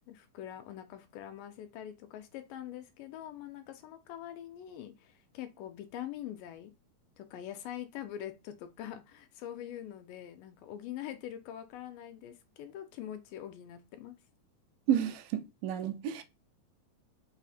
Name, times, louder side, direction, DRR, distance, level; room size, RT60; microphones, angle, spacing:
voice 1, 0.1-6.7 7.2-14.2, left 11 dB, 80° left, 2.1 m, -44 dB
voice 2, 14.9-16.2, right 10 dB, 80° right, 2.1 m, -31 dB
5.4 x 2.0 x 4.1 m
omnidirectional pair, 3.9 m